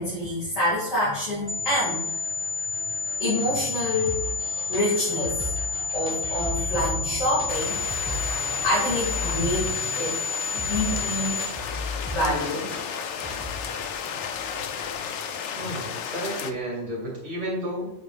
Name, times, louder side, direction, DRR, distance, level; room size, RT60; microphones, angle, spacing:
voice 1, 0.0-2.0 3.2-4.2 4.7-5.5 5.9-10.1 10.5-11.4 12.1-12.8 14.5-14.6, left 1 dB, 90° left, -7 dB, 2.7 m, -27 dB
sound 1, 1.4-16.9, left 1 dB, 5° right, 1.3 m, -37 dB
sound 2, 1.5-11.5, left 4 dB, 15° left, 1.5 m, -30 dB
sound 3, 7.5-16.5, left 7 dB, 70° left, 0.9 m, -33 dB
voice 2, 15.5-17.9, right 1 dB, 65° right, -5 dB, 3.1 m, -32 dB
7.8 x 6.4 x 2.4 m, 0.89 s
omnidirectional pair, 1.3 m